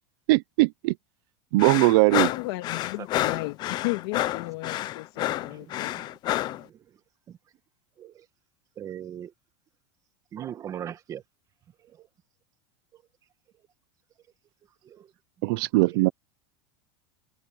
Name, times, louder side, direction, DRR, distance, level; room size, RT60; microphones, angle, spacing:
voice 1, 0.3-0.9 1.5-2.3 15.4-16.1, right 22 dB, 55° right, 0.7 m, -20 dB
sound 1, 1.6-6.6, left 15 dB, 30° left, 0.8 m, -29 dB
voice 2, 2.3-6.0, left 23 dB, 60° left, 2.5 m, -34 dB
voice 3, 3.0-3.4 5.3-7.0 7.3-7.4 8.0-8.3 8.7-9.3 10.3-11.2 11.8-12.1 12.9-13.0 14.8-15.1 15.5-15.6 15.9-16.1, right 10 dB, 25° right, 1.7 m, -41 dB
supercardioid pair, 165°, 14 cm